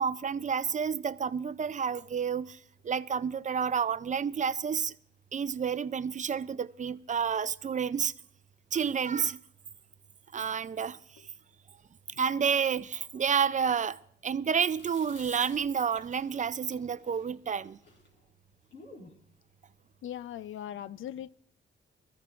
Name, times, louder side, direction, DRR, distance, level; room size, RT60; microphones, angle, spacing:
voice 1, 0.0-2.5 2.9-4.9 5.3-8.1 8.7-9.4 10.3-11.0 12.2-14.0 14.2-17.8, right 7 dB, 40° right, 0.5 m, -30 dB
Chewing mastication, 14.8-19.2, left 2 dB, 60° left, 4.6 m, -52 dB
voice 2, 20.0-21.3, left 11 dB, 80° left, 0.5 m, -39 dB
22.0 x 14.0 x 2.5 m
cardioid pair, 85°, 20 cm